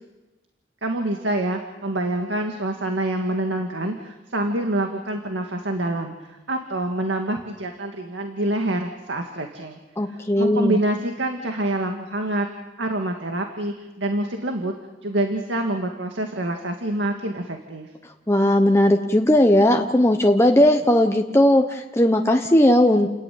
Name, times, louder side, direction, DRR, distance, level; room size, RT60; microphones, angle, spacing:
voice 1, 0.8-9.8 10.4-12.5 12.8-14.7 15.0-17.9, right 1 dB, 85° right, 3 dB, 2.1 m, -26 dB
voice 2, 10.0-10.8 18.3-23.1, left 1 dB, 15° left, 3 dB, 1.0 m, -17 dB
30.0 x 14.5 x 9.4 m, 1.1 s
head